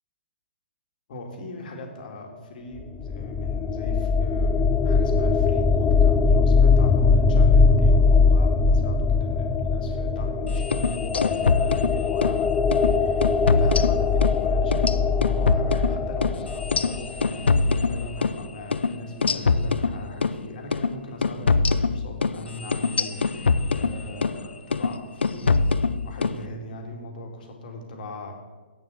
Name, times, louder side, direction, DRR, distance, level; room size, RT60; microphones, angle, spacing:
voice 1, 1.1-25.5 26.0-28.3, left 1 dB, 50° left, 3 dB, 2.2 m, -39 dB
sound 1, 2.8-17.6, left 4 dB, 15° left, 0.4 m, -21 dB
sound 2, 10.6-12.4 12.7-12.9 13.2-14.4 14.7-18.4 18.7-18.9 19.2-20.4 20.7-20.9 21.2-24.4 24.7-25.0 25.2-26.4, left 4 dB, 70° left, 0.6 m, -23 dB
8.2 x 7.3 x 8.2 m, 1.3 s
figure-of-eight pair, 125°, 6 cm